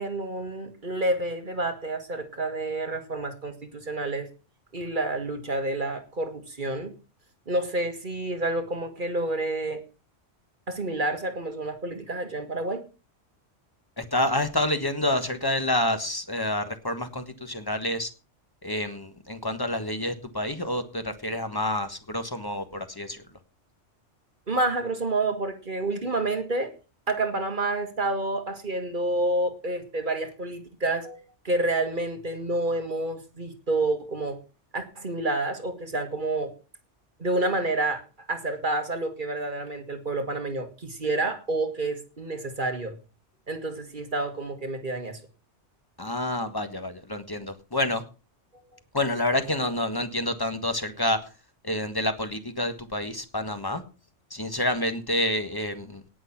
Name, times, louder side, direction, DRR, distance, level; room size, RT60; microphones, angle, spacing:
voice 1, 0.0-4.3 4.7-6.9 7.5-9.8 10.7-12.8 24.5-26.7 27.1-34.4 34.7-36.5 37.2-38.0 38.3-43.0 43.5-45.2, right 2 dB, 45° right, 7 dB, 1.8 m, -29 dB
voice 2, 14.0-18.1 18.6-23.2 46.0-48.0 48.9-51.2 51.6-53.8 54.3-56.0, left 1 dB, 20° left, 8 dB, 1.4 m, -28 dB
18.0 x 6.3 x 5.9 m, 0.33 s
omnidirectional pair, 1.2 m